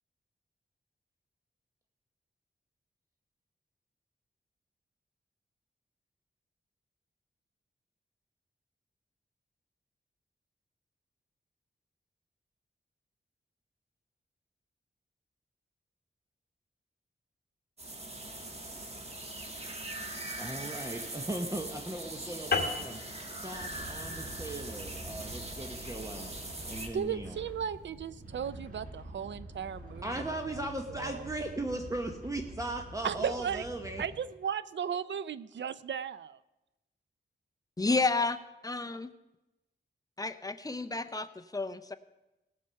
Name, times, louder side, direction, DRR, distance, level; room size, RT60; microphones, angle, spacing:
sound 1, 17.8-26.9, right 2 dB, 35° right, 1.5 m, -41 dB
voice 1, 20.4-23.0 23.4-26.3 26.7-27.4 30.0-34.0, right 1 dB, 15° right, 4 dB, 0.9 m, -38 dB
sound 2, 22.5-27.3, left 4 dB, 60° left, 1.4 m, -37 dB
sound 3, 23.5-34.1, right 1 dB, 50° right, 5.1 m, -47 dB
voice 2, 26.9-30.2 30.5-30.6 30.9-31.3 33.0-33.6 34.0-36.4, right 8 dB, 85° right, 16 dB, 0.5 m, -36 dB
voice 3, 37.8-38.4 38.6-39.1 40.2-41.9, left 3 dB, 20° left, 11 dB, 0.6 m, -31 dB
18.5 x 6.7 x 5.6 m, 0.97 s
wide cardioid pair, 115°, 18 cm